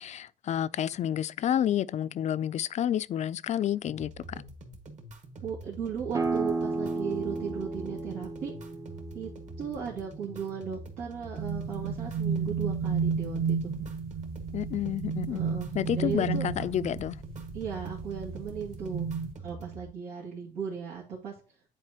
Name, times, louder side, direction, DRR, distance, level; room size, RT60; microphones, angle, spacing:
voice 1, 0.0-4.4 14.5-15.4 15.7-17.2, left 10 dB, 45° left, 0.4 m, -30 dB
sound 1, 3.9-19.9, right 1 dB, 45° right, 1.6 m, -46 dB
voice 2, 5.4-8.5 9.1-9.3 9.6-13.7 15.3-15.7 15.9-16.4 17.5-19.1 19.4-21.3, right 7 dB, 90° right, 2.2 m, -36 dB
sound 2, 6.1-11.5, right 3 dB, 20° right, 0.7 m, -34 dB
sound 3, 11.4-19.3, right 6 dB, 60° right, 1.5 m, -32 dB
9.9 x 4.3 x 2.8 m
cardioid pair, 110°, 17 cm